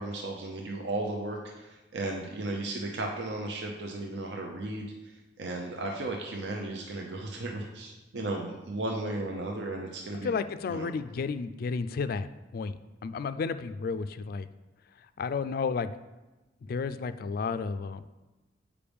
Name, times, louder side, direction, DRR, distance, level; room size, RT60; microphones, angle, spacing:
voice 1, 0.0-5.1 5.4-10.3 10.7-10.9, right 2 dB, 70° right, 0 dB, 0.7 m, -35 dB
voice 2, 10.2-14.5 15.2-15.9 16.6-18.0, left 5 dB, 55° left, 13 dB, 0.3 m, -32 dB
8.5 x 5.0 x 3.5 m, 1.1 s
head